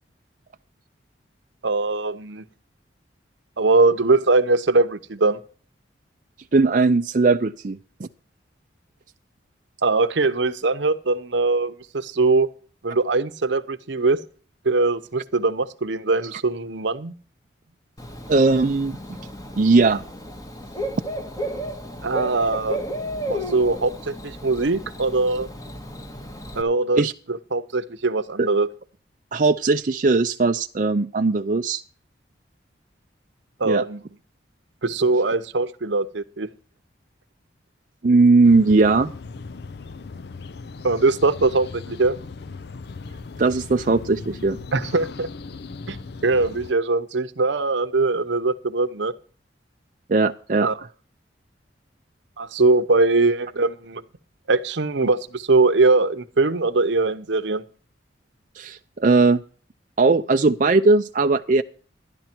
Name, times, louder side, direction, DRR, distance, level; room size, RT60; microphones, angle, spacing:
voice 1, 1.6-2.4 3.6-5.4 9.8-12.5 12.8-14.2 14.6-17.1 22.0-22.8 23.3-25.5 26.6-27.0 27.3-28.7 33.6-34.0 34.8-36.5 40.8-42.2 44.7-45.3 45.9-46.0 46.2-49.1 50.6-50.8 52.4-54.0 54.5-57.6, right 3 dB, 70° right, 0.9 m, -21 dB
voice 2, 6.5-8.1 18.3-19.0 19.6-20.0 27.0-27.1 28.4-28.5 29.3-31.8 33.6-33.8 38.0-39.1 43.4-44.6 50.1-50.7 58.6-59.4 60.0-61.6, right 3 dB, 45° right, 0.5 m, -18 dB
Bird / Cricket, 18.0-26.6, equal, 20° left, 1.5 m, -33 dB
sound 1, 38.4-46.7, left 4 dB, 60° left, 0.5 m, -38 dB
12.0 x 11.5 x 4.4 m
head